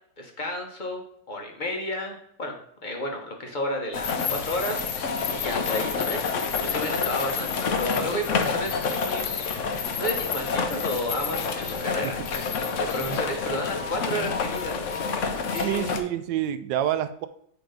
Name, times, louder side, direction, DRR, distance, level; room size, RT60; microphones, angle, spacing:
voice 1, 0.2-2.5 2.8-14.8 15.1-16.0, left 1 dB, 35° left, 2 dB, 0.9 m, -32 dB
sound 1, 3.9-16.0, left 5 dB, 60° left, 0.8 m, -28 dB
voice 2, 15.5-17.3, right 11 dB, 80° right, 10 dB, 1.2 m, -28 dB
8.3 x 3.0 x 5.0 m, 0.68 s
omnidirectional pair, 1.9 m